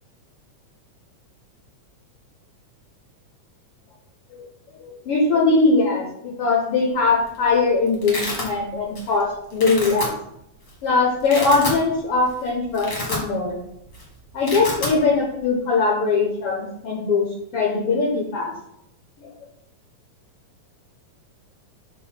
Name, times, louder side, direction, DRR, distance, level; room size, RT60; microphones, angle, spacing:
voice 1, 4.8-10.1 10.8-13.6 14.3-17.3 17.5-18.5 19.2-19.3, left 3 dB, 65° left, -1 dB, 1.5 m, -21 dB
Domestic sounds home sounds, 7.0-7.4 7.6-8.5 8.9-9.2 9.5-10.1 10.7-10.8 11.1-11.8 12.2-12.3 12.7-13.6 13.8-14.0 14.3-14.9, left 2 dB, 35° left, 1.3 m, -29 dB
5.2 x 3.5 x 5.6 m, 0.76 s
omnidirectional pair, 3.5 m